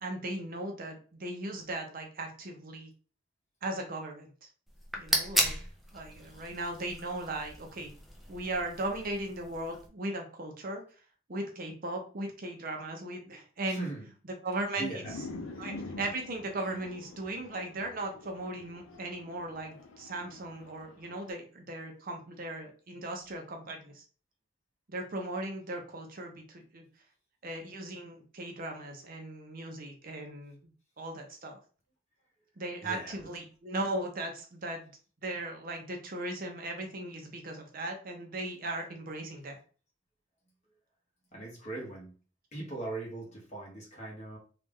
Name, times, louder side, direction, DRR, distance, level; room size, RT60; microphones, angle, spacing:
voice 1, 0.0-2.9 3.6-4.3 5.0-5.5 5.9-7.9 8.3-10.8 11.3-13.9 14.4-14.9 15.6-24.0 24.9-26.8 27.4-30.7 31.0-31.6 32.6-34.9 35.2-39.6, right 2 dB, 45° right, 3 dB, 0.7 m, -37 dB
sound 1, 4.7-9.9, equal, ahead, 0.5 m, -35 dB
voice 2, 5.3-5.7 13.7-14.1 14.8-15.1 15.4-15.5 23.6-23.7 32.8-33.1 41.3-42.1 42.5-44.4, right 2 dB, 35° left, -2 dB, 1.4 m, -40 dB
sound 2, 15.0-21.3, left 3 dB, 80° left, 0.6 m, -46 dB
3.2 x 2.4 x 3.5 m, 0.38 s
head